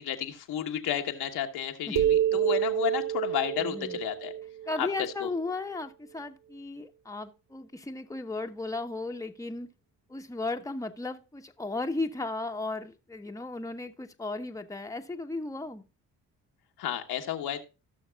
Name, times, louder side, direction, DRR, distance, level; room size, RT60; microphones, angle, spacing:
voice 1, 0.0-4.3 4.8-5.3 16.8-17.6, left 10 dB, 70° left, 1.3 m, -32 dB
sound 1, 2.0-5.5, right 11 dB, 55° right, 0.7 m, -28 dB
voice 2, 3.6-4.0 4.7-9.7 10.1-15.8, left 3 dB, 10° left, 1.1 m, -35 dB
16.5 x 6.4 x 2.3 m
hypercardioid pair, 50°, 40 cm